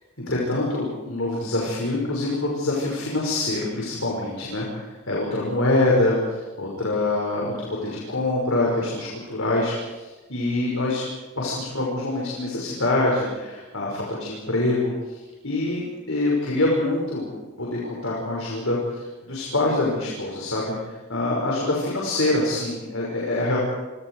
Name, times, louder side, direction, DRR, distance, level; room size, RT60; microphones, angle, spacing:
voice 1, 0.3-6.2 6.6-11.0 11.4-14.9 15.4-17.3 17.6-18.8 19.2-20.7 21.1-23.6, left 2 dB, 60° left, -3 dB, 6.2 m, -25 dB
30.0 x 25.5 x 5.0 m, 1.2 s
head